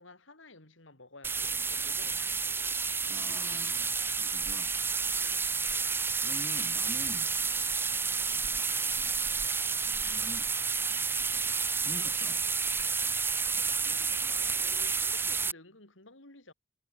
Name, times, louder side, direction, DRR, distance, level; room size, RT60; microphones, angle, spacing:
voice 1, 0.0-2.6 6.2-6.3 8.3-8.5 13.7-16.5, left 2 dB, 80° left, 5.4 m, -54 dB
sound 1, 1.2-15.5, right 5 dB, 10° right, 0.4 m, -30 dB
voice 2, 3.1-4.7 6.1-7.7 9.8-10.5 11.8-12.4, left 1 dB, 20° left, 0.9 m, -46 dB
head